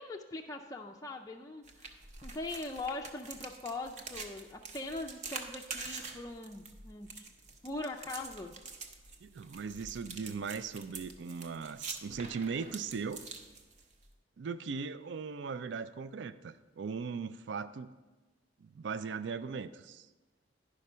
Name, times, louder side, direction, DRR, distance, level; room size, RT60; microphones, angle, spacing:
voice 1, 0.0-1.9 2.2-7.3 7.6-8.5, left 2 dB, 20° left, 2 dB, 0.4 m, -41 dB
sound 1, 1.6-14.1, right 4 dB, 40° right, 0.7 m, -46 dB
voice 2, 9.2-13.2 14.4-17.9 18.6-20.1, right 5 dB, 65° right, 14 dB, 0.4 m, -39 dB
10.5 x 5.1 x 5.5 m, 1.2 s
head